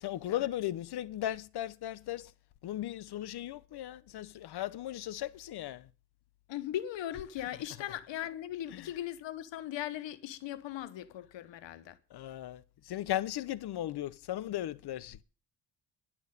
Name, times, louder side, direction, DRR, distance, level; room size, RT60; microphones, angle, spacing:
voice 1, 0.0-2.2 2.6-5.8 12.1-12.6 12.9-15.2, left 13 dB, 60° left, 0.8 m, -36 dB
voice 2, 6.5-12.0, left 12 dB, 80° left, 1.1 m, -39 dB
11.0 x 6.2 x 9.1 m
wide cardioid pair, 170°, 43 cm